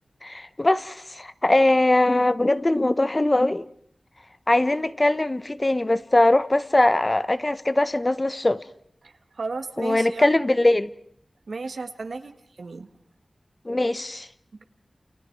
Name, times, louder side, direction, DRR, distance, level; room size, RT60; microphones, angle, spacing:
voice 1, 0.2-3.7 4.5-8.6 9.8-10.9 13.6-14.3, left 1 dB, 30° left, 1.0 m, -21 dB
voice 2, 9.0-10.3 11.5-12.3 12.6-12.9, right 3 dB, 85° right, 1.6 m, -34 dB
29.5 x 29.0 x 4.7 m
wide cardioid pair, 60°, 0 cm